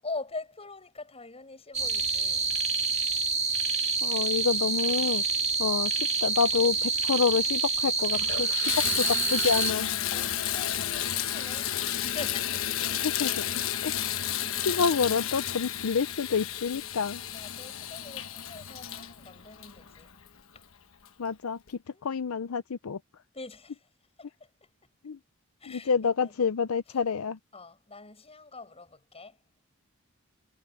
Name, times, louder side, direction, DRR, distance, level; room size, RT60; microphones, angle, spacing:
voice 1, 0.0-2.5 10.1-12.9 13.2-13.3 14.8-14.9 17.3-20.1 20.5-20.6 21.9-22.0 23.3-23.9 24.2-24.7 25.6-26.4 26.9-27.0 27.5-29.4, left 3 dB, 30° left, 8.0 m, -43 dB
sound 1, 1.7-9.7, right 4 dB, 30° right, 1.8 m, -27 dB
voice 2, 4.0-5.2 5.6-10.0 13.0-13.4 13.8-13.9 14.6-17.2 21.2-23.0 25.0-25.2 25.7-27.4, left 5 dB, 90° left, 0.6 m, -28 dB
Water tap faucet / Bathtub (filling or washing), 7.4-7.5 8.0-20.4 21.1-21.2 21.7-21.8, left 10 dB, 70° left, 1.2 m, -32 dB
head